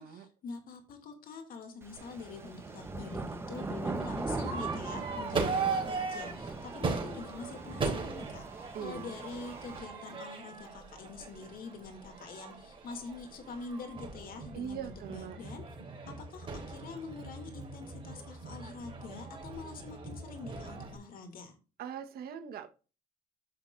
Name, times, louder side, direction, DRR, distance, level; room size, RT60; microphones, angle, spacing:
voice 1, 0.0-15.6 16.1-21.5, left 4 dB, 60° left, 4 dB, 2.7 m, -45 dB
sound 1, 1.8-9.8, right 3 dB, 15° right, 1.0 m, -41 dB
Crowd / Fireworks, 2.0-21.0, right 4 dB, 30° right, 3.8 m, -39 dB
voice 2, 8.7-9.2 14.5-15.4 21.8-22.7, right 8 dB, 65° right, 7 dB, 1.4 m, -41 dB
11.0 x 6.1 x 2.6 m, 0.32 s
cardioid pair, 110°, 17 cm